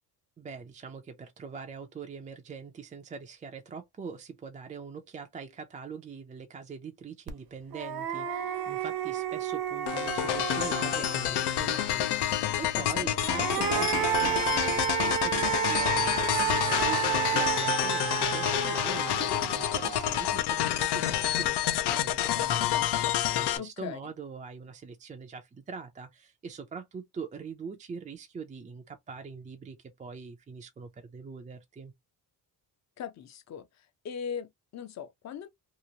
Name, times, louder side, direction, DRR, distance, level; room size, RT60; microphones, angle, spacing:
voice 1, 0.4-31.9, right 5 dB, 20° right, 0.3 m, -43 dB
sound 1, 7.3-7.4 7.7-11.4 13.0-20.3, right 10 dB, 65° right, 0.7 m, -31 dB
sound 2, 9.9-23.6, left 12 dB, 85° left, 0.6 m, -28 dB
voice 2, 12.7-13.1 23.6-24.0 33.0-35.5, left 7 dB, 45° left, 0.5 m, -39 dB
3.0 x 2.4 x 2.7 m
cardioid pair, 175°, 39 cm